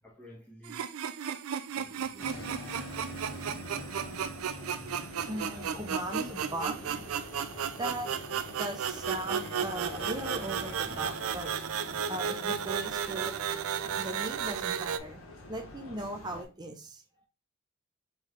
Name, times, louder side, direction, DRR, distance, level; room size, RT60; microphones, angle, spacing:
voice 1, 0.0-0.9 1.7-3.3 10.7-11.6 17.1-17.3, equal, 5° left, 1.3 m, -53 dB
sound 1, 0.6-15.0, right 8 dB, 85° right, 0.4 m, -34 dB
sound 2, 2.2-16.4, left 1 dB, 80° left, 1.2 m, -44 dB
voice 2, 5.3-7.0 7.8-8.1 8.6-11.5 12.1-13.4 14.0-15.2 15.5-17.0, right 1 dB, 20° right, 0.6 m, -38 dB
4.0 x 3.5 x 3.1 m
head